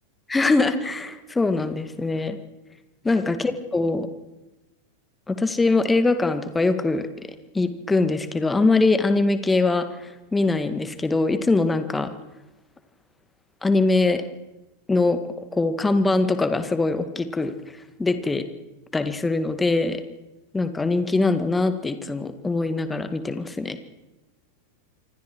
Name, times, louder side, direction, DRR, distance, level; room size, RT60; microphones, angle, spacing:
voice 1, 0.3-2.4 3.0-4.1 5.3-7.1 7.5-12.1 13.6-14.2 14.9-15.2 15.5-17.5 18.0-18.5 18.9-20.0 20.5-23.9, left 3 dB, 10° left, 10 dB, 1.9 m, -22 dB
28.0 x 25.0 x 4.8 m, 1.0 s
figure-of-eight pair, 90°, 0 cm